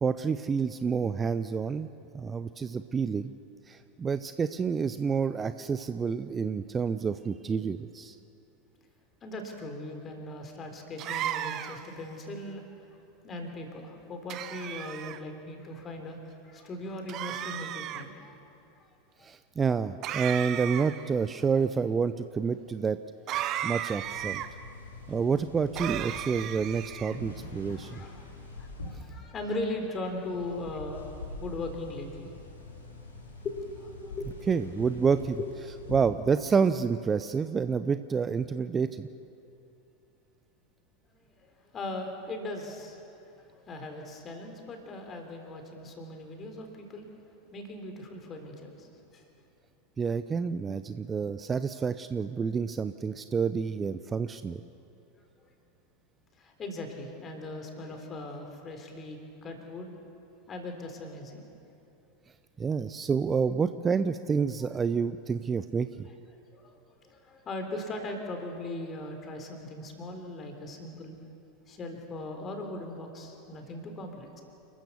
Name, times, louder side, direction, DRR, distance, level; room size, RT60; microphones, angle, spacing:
voice 1, 0.0-1.9 2.1-3.3 3.7-8.2 19.2-23.0 23.6-24.4 25.1-28.0 34.5-35.4 35.9-39.1 50.0-54.6 62.6-66.1, right 5 dB, 20° right, 12 dB, 0.6 m, -28 dB
voice 2, 9.2-13.0 13.2-18.4 18.8-18.9 19.2-19.3 27.6-28.3 28.6-31.1 31.4-32.3 33.4-34.7 35.1-35.9 41.1-47.1 47.5-49.2 56.4-59.9 60.5-61.5 66.5-66.8 67.0-71.1 71.7-74.4, left 2 dB, 30° left, 4 dB, 3.7 m, -39 dB
sound 1, 11.0-11.9 14.3-15.2 17.1-18.0 20.0-21.1 23.3-24.5 25.7-27.2, right 11 dB, 40° right, 0.9 m, -34 dB
sound 2, 24.0-36.1, left 2 dB, 80° left, 3.7 m, -44 dB
29.0 x 13.5 x 7.1 m, 2.7 s
figure-of-eight pair, 85°, 0 cm